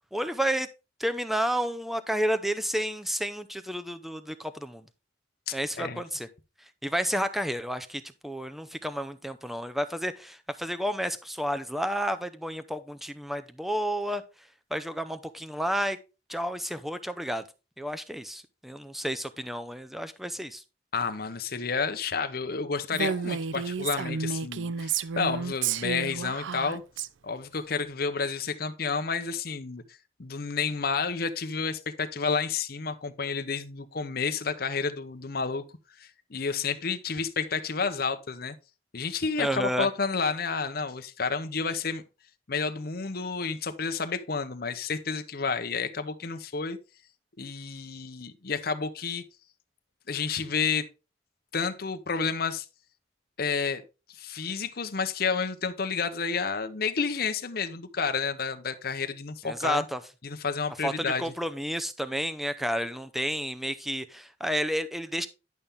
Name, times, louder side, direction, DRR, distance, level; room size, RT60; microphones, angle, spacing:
voice 1, 0.1-0.7 1.0-4.8 5.5-6.3 6.8-14.2 14.7-16.0 16.3-17.4 17.8-20.6 39.4-39.9 59.4-60.0 60.8-65.3, equal, ahead, 0.6 m, -31 dB
voice 2, 5.5-6.0 20.9-26.8 27.2-29.8 30.2-35.6 36.0-38.6 38.9-42.0 42.5-46.8 47.4-49.2 50.1-50.9 51.5-52.7 53.4-53.8 54.1-59.8 60.2-61.3, left 5 dB, 55° left, 0.8 m, -30 dB
Female speech woman speaking, 22.9-27.1, right 6 dB, 90° right, 0.5 m, -31 dB
10.5 x 5.7 x 3.5 m
head